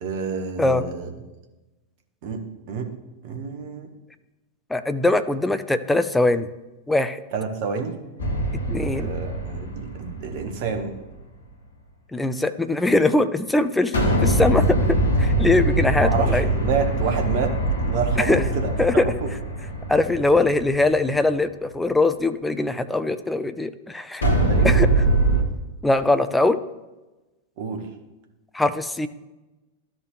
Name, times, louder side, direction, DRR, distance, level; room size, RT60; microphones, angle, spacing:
voice 1, 0.0-1.1 2.2-2.9 3.2-3.9 7.3-8.0 8.9-11.0 16.0-19.3 24.3-24.8 27.6-27.9, right 5 dB, 50° right, 4 dB, 1.2 m, -29 dB
voice 2, 4.7-6.5 6.9-7.2 8.7-9.1 12.1-14.8 15.2-16.4 18.2-18.4 18.8-19.1 19.9-24.2 24.6-24.9 25.8-26.6 28.5-29.1, left 2 dB, 5° left, 10 dB, 0.4 m, -21 dB
sound 1, 8.2-10.7 13.9-21.2 24.2-25.4, right 2 dB, 70° left, 1.3 m, -22 dB
13.0 x 4.3 x 3.2 m, 1.1 s
figure-of-eight pair, 90°, 0 cm